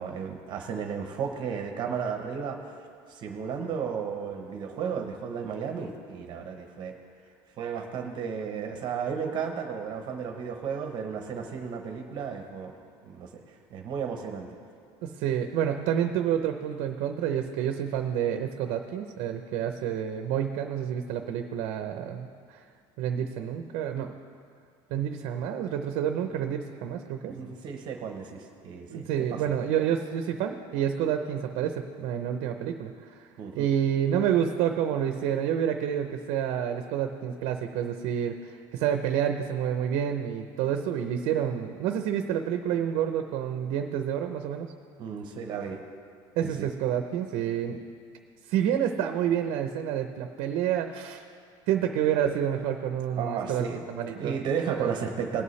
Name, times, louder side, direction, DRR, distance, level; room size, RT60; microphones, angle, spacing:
voice 1, 0.0-7.0 7.6-12.7 13.0-14.5 27.2-29.4 33.4-33.7 45.0-45.8 46.4-46.7 53.2-53.8 54.1-55.4, right 6 dB, 45° right, 4 dB, 0.9 m, -34 dB
voice 2, 15.0-22.6 23.0-24.1 24.9-27.4 28.9-33.1 33.5-44.7 46.4-47.8 48.5-51.2 51.7-54.3 54.7-54.9, right 9 dB, 70° right, 6 dB, 0.6 m, -29 dB
18.5 x 8.3 x 3.2 m, 2.3 s
cardioid pair, 165°, 11 cm